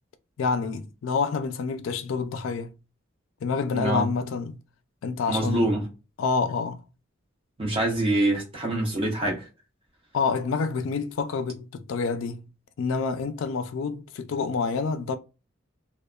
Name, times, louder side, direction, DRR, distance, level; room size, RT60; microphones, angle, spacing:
voice 1, 0.4-2.7 3.4-4.6 5.0-5.7 6.2-6.8 10.1-12.5 12.8-15.2, left 5 dB, 70° left, 0.3 m, -28 dB
voice 2, 3.7-4.1 5.3-5.8 7.6-9.5, right 1 dB, 25° right, 1.0 m, -25 dB
2.8 x 2.0 x 2.2 m
head